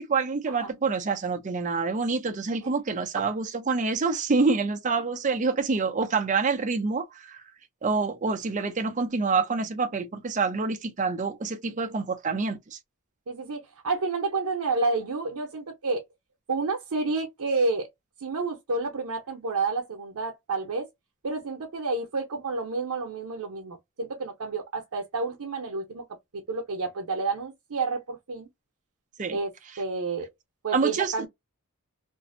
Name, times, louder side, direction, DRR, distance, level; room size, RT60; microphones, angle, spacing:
voice 1, 0.0-7.4 7.8-12.8 29.2-29.4 30.7-31.1, right 4 dB, 35° right, 0.5 m, -27 dB
voice 2, 13.3-16.0 16.5-17.9 18.2-20.9 21.2-26.0 26.3-28.5 29.3-29.5 29.8-30.3 30.6-31.3, right 3 dB, 80° right, 0.7 m, -30 dB
2.6 x 2.0 x 2.5 m
head